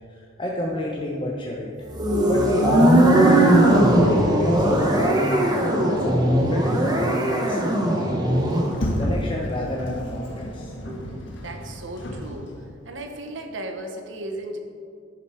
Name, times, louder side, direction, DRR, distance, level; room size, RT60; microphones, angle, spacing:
voice 1, 0.1-1.9 2.3-8.4 9.0-10.7, left 1 dB, 25° left, -3 dB, 0.9 m, -29 dB
sound 1, 1.9-8.7, right 1 dB, 20° right, 1.2 m, -19 dB
Sliding door, 8.3-12.8, left 1 dB, 65° left, 1.6 m, -31 dB
voice 2, 10.9-12.5 12.9-14.6, right 1 dB, 70° right, 4 dB, 1.1 m, -35 dB
11.5 x 6.8 x 4.5 m, 2.4 s
head